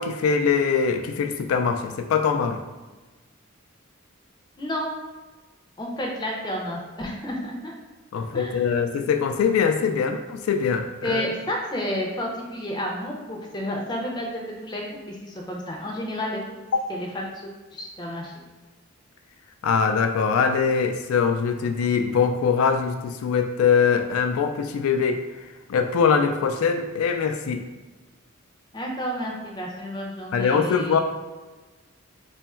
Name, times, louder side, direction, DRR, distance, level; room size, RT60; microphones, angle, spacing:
voice 1, 0.0-2.6 8.1-11.2 16.7-16.8 19.6-27.6 30.3-31.0, left 6 dB, 80° left, 6 dB, 0.3 m, -22 dB
voice 2, 4.6-4.9 5.8-7.7 8.3-8.6 11.0-16.4 16.9-18.3 28.7-31.0, equal, 20° left, -1 dB, 0.5 m, -31 dB
3.0 x 2.3 x 4.2 m, 1.2 s
head